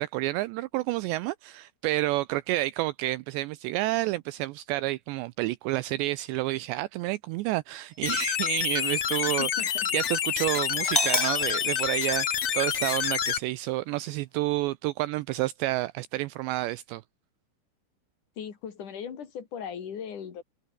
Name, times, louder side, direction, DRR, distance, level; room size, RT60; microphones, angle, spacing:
voice 1, 0.0-9.5 9.9-17.0, right 18 dB, 90° right, 2.5 m, -30 dB
sound 1, 8.0-13.4, left 9 dB, 70° left, 1.5 m, -28 dB
voice 2, 9.4-9.9 18.4-20.4, left 7 dB, 45° left, 3.6 m, -38 dB
Doorbell, 10.8-12.8, left 1 dB, 5° left, 3.3 m, -31 dB
omnidirectional pair, 5.7 m